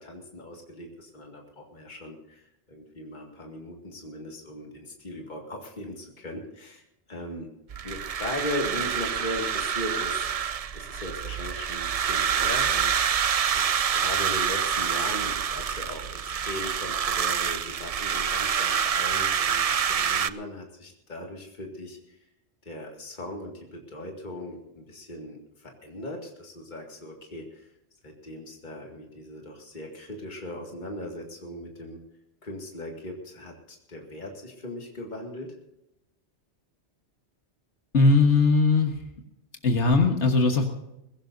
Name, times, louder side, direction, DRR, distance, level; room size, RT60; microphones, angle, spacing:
voice 1, 0.0-2.4 2.7-6.8 7.1-7.5 7.8-10.3 10.7-13.2 13.5-22.2 22.6-27.7 28.0-32.0 32.4-35.6, left 1 dB, 40° left, 0 dB, 2.3 m, -38 dB
sound 1, 7.7-20.3, right 8 dB, 50° right, 0.4 m, -27 dB
voice 2, 37.9-39.0 39.6-40.7, left 3 dB, 85° left, 3 dB, 1.8 m, -20 dB
21.5 x 16.5 x 2.7 m, 0.87 s
omnidirectional pair, 1.2 m